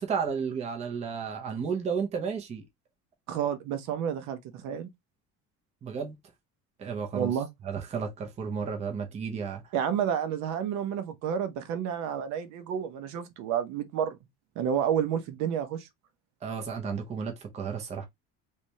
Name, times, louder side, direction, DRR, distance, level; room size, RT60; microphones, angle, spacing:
voice 1, 0.0-2.7 5.8-6.2 6.8-7.3 7.6-9.7 16.4-18.1, right 6 dB, 20° right, 0.6 m, -32 dB
voice 2, 3.3-4.9 7.1-7.5 9.7-14.2 14.6-15.9, right 8 dB, 65° right, 0.8 m, -30 dB
3.3 x 3.2 x 2.7 m
cardioid pair, 170°, 31 cm